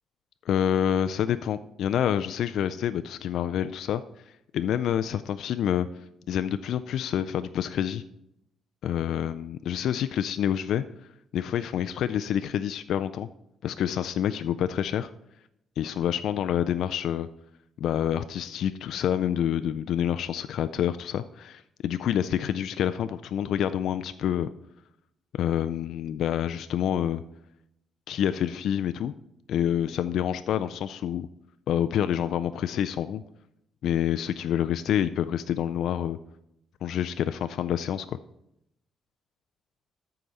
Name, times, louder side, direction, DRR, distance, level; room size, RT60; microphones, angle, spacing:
voice 1, 0.5-4.0 4.5-8.0 8.8-10.8 11.3-13.3 13.6-15.1 15.8-17.3 17.8-24.5 25.3-27.2 28.1-29.1 29.5-31.3 31.7-33.2 33.8-36.2 36.8-38.2, left 10 dB, 75° left, 10 dB, 0.3 m, -27 dB
13.5 x 4.9 x 4.0 m, 0.80 s
cardioid pair, 90°, 0 cm